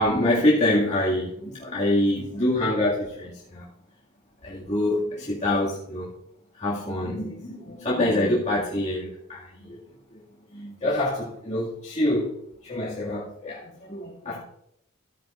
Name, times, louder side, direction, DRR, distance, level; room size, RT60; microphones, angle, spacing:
voice 1, 0.0-3.7 4.4-6.1 6.5-9.8 10.1-10.2 10.5-12.4 12.6-14.4, left 1 dB, 30° left, -8 dB, 2.3 m, -26 dB
15.0 x 9.2 x 2.6 m, 0.76 s
head